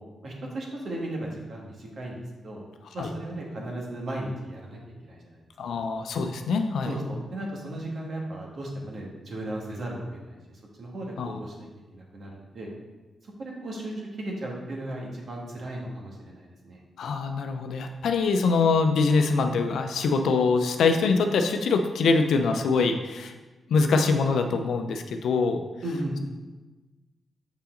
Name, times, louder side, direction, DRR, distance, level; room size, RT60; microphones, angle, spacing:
voice 1, 0.0-2.6 2.9-5.4 6.9-12.7 13.4-16.8 25.8-26.2, right 1 dB, 65° right, -2 dB, 1.8 m, -36 dB
voice 2, 5.6-6.9 11.2-11.3 17.0-23.3 23.7-25.6, left 4 dB, 85° left, 5 dB, 0.6 m, -24 dB
6.8 x 5.8 x 3.8 m, 1.2 s
cardioid pair, 75°, 0 cm